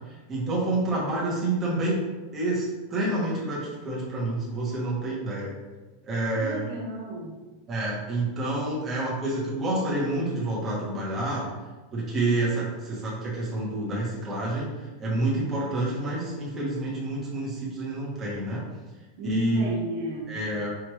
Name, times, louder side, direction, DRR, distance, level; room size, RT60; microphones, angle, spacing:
voice 1, 0.3-2.0 2.3-5.5 6.0-6.7 7.7-11.4 11.9-18.6 19.2-19.7 20.3-20.7, right 2 dB, 15° right, -6 dB, 1.0 m, -28 dB
voice 2, 6.3-7.4 19.2-20.4, equal, 65° right, -2 dB, 1.1 m, -33 dB
4.6 x 2.5 x 3.1 m, 1.2 s
supercardioid pair, 170°, 0 cm